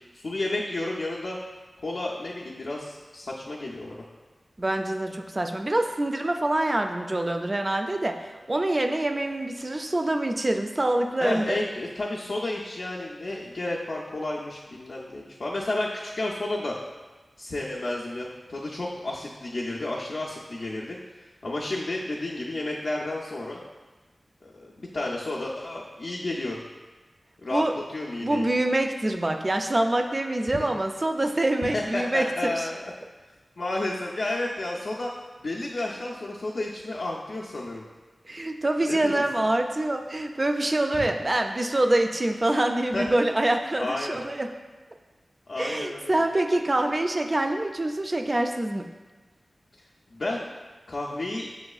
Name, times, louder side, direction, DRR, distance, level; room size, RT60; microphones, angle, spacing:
voice 1, 0.1-1.4 1.8-4.0 11.2-16.7 17.4-21.0 21.4-23.6 24.4-26.6 27.4-27.6 27.9-28.5 30.5-30.7 31.7-32.9 33.6-35.1 35.4-37.8 38.8-39.2 40.9-41.1 42.9-43.1 43.8-44.2 45.5-46.1 50.1-50.5 50.9-51.5, left 2 dB, 70° left, -4 dB, 0.4 m, -31 dB
voice 2, 4.6-11.6 27.5-27.7 28.2-32.6 38.3-44.5 45.6-48.9, right 1 dB, 35° right, 5 dB, 0.3 m, -25 dB
6.1 x 3.0 x 2.3 m, 1.2 s
wide cardioid pair, 75°, 0 cm